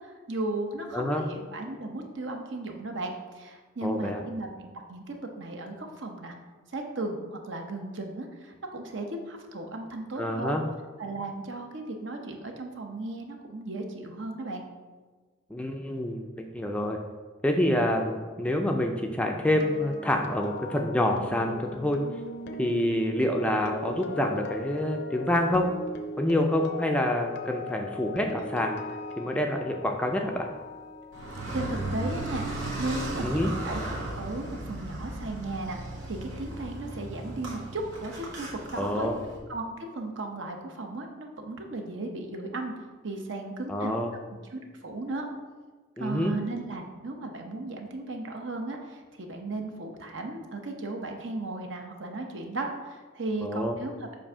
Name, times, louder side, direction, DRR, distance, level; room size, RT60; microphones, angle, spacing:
voice 1, 0.0-6.3 6.7-10.6 11.0-14.6 31.5-39.1 39.5-42.7 43.0-43.9 44.5-45.3 46.0-54.1, right 2 dB, 65° right, 3 dB, 0.8 m, -36 dB
voice 2, 0.9-1.3 3.8-4.2 10.2-10.6 15.5-17.0 17.4-22.0 22.6-25.8 26.2-28.8 29.2-30.5 33.2-33.5 38.8-39.1 43.7-44.1 46.0-46.3 53.4-53.8, left 1 dB, 5° left, 2 dB, 0.4 m, -27 dB
sound 1, 19.4-33.4 33.7-34.0, left 2 dB, 55° left, 0.5 m, -39 dB
Car, 31.1-39.4, right 1 dB, 80° right, 1.6 m, -36 dB
7.3 x 2.7 x 5.5 m, 1.4 s
head